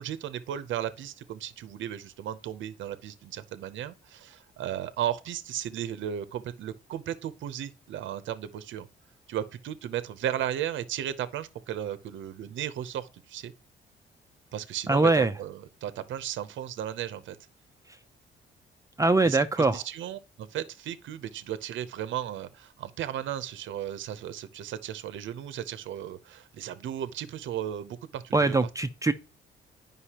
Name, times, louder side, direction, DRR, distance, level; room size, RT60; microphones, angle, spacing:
voice 1, 0.0-8.9 9.3-13.5 14.5-17.4 19.2-28.6, right 10 dB, 70° right, 0.7 m, -35 dB
voice 2, 14.9-15.3 19.0-19.8 28.3-29.1, right 3 dB, 15° right, 0.5 m, -22 dB
9.8 x 5.4 x 2.9 m
cardioid pair, 90°, 20 cm